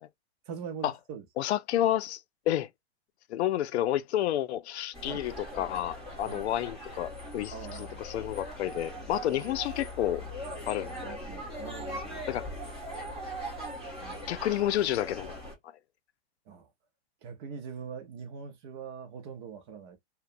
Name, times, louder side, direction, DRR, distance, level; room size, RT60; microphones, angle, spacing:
voice 1, 0.5-1.3 5.1-5.3 6.2-6.5 7.5-8.2 9.3-9.4 10.8-12.3 14.0-14.4 16.5-16.7 17.2-20.0, right 6 dB, 25° right, 0.5 m, -43 dB
voice 2, 1.4-2.2 2.5-2.7 3.3-7.5 8.0-10.2 10.7-11.2 12.3-12.5 12.9-13.1 14.3-15.3, left 12 dB, 80° left, 0.5 m, -30 dB
sound 1, 4.9-15.5, equal, ahead, 1.1 m, -40 dB
2.8 x 2.1 x 2.5 m
supercardioid pair, 160°, 33 cm